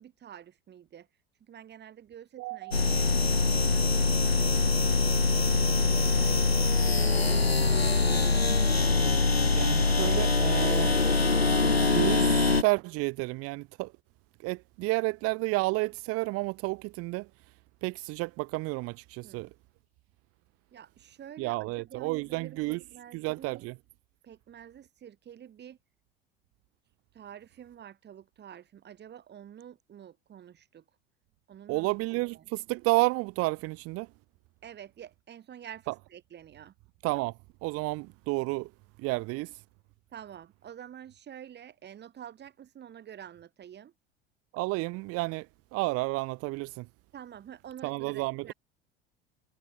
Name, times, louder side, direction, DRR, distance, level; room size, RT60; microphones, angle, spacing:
voice 1, 0.0-8.3 19.2-19.5 20.7-23.7 24.2-25.8 26.8-30.8 31.5-32.0 32.3-32.4 34.6-36.7 40.1-43.9 47.1-48.5, right 9 dB, 35° right, 7.9 m, -48 dB
voice 2, 2.4-3.0 9.5-10.9 11.7-13.9 14.4-17.3 17.8-19.5 21.4-22.8 23.1-23.8 31.7-34.1 35.9-36.0 37.0-38.7 39.0-39.6 44.5-45.5 45.7-46.9 47.8-48.5, right 23 dB, 50° right, 2.8 m, -31 dB
sound 1, 2.7-12.6, left 3 dB, 90° left, 1.9 m, -24 dB
figure-of-eight pair, 70°, 30 cm